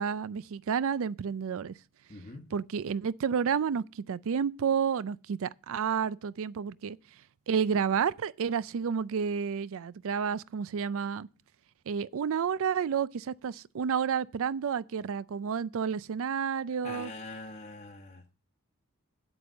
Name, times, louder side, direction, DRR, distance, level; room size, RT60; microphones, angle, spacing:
voice 1, 0.0-1.7 2.5-7.0 7.5-11.3 11.9-17.1, right 7 dB, 60° right, 0.4 m, -30 dB
voice 2, 2.1-2.4 16.8-18.3, left 2 dB, 30° left, 1.0 m, -43 dB
8.7 x 8.0 x 5.1 m
head